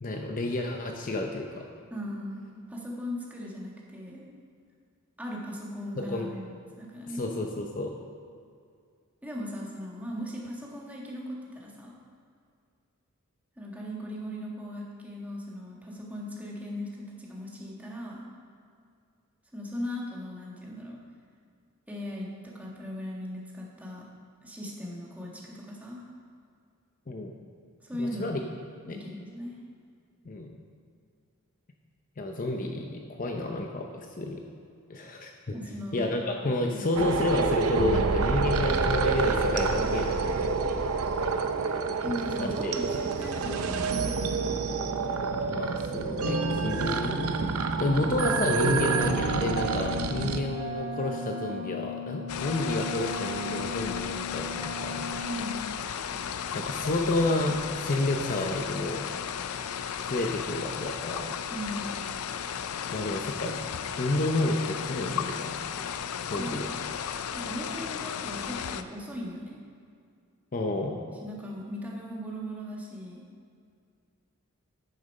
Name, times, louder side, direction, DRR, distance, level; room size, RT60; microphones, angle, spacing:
voice 1, 0.0-1.7 6.0-6.3 7.2-7.9 27.1-27.3 28.0-28.4 28.9-29.0 30.3-30.6 32.2-34.4 34.9-35.3 35.9-40.5 42.4-42.8 45.5-47.3 47.8-55.1 56.5-59.1 60.0-61.4 62.9-63.6 64.0-65.8 66.2-66.7 70.5-71.0, left 2 dB, 40° left, 3 dB, 0.6 m, -30 dB
voice 2, 1.9-4.3 5.2-7.2 9.2-11.9 13.6-18.2 19.5-21.0 21.9-24.0 24.4-26.0 27.8-28.3 28.9-29.6 35.5-36.0 36.7-36.9 42.0-44.3 55.3-55.6 61.5-61.9 66.4-66.6 67.3-69.6 71.1-73.2, equal, 5° right, -3 dB, 1.5 m, -38 dB
sound 1, 37.0-50.4, right 4 dB, 70° right, 0.6 m, -28 dB
Wind instrument woodwind instrument, 48.7-55.5, left 2 dB, 25° right, 2.6 m, -37 dB
sound 2, 52.3-68.8, left 8 dB, 90° left, 0.4 m, -35 dB
8.9 x 6.8 x 5.4 m, 2.3 s
head